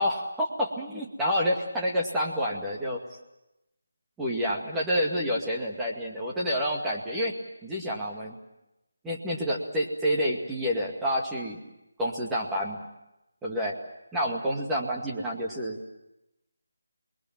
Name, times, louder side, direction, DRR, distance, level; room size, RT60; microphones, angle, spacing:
voice 1, 0.0-3.0 4.2-7.3 7.6-8.4 9.0-11.6 12.0-12.9 13.4-13.8 14.1-15.8, equal, 5° right, -3 dB, 2.2 m, -28 dB
28.0 x 22.0 x 7.6 m, 0.90 s
figure-of-eight pair, 175°, 0 cm